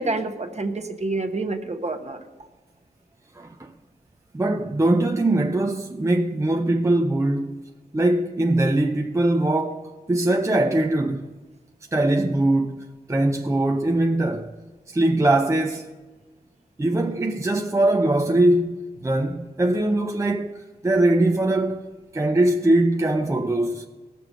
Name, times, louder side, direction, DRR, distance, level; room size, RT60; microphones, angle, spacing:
voice 1, 0.0-2.2, right 2 dB, 40° right, 1.0 m, -28 dB
voice 2, 3.4-3.7 4.3-7.6 7.9-11.3 11.9-14.5 14.9-15.9 16.8-20.6 20.8-23.9, right 1 dB, 15° right, 0.5 m, -22 dB
17.5 x 6.8 x 6.2 m
wide cardioid pair, 85°, 17 cm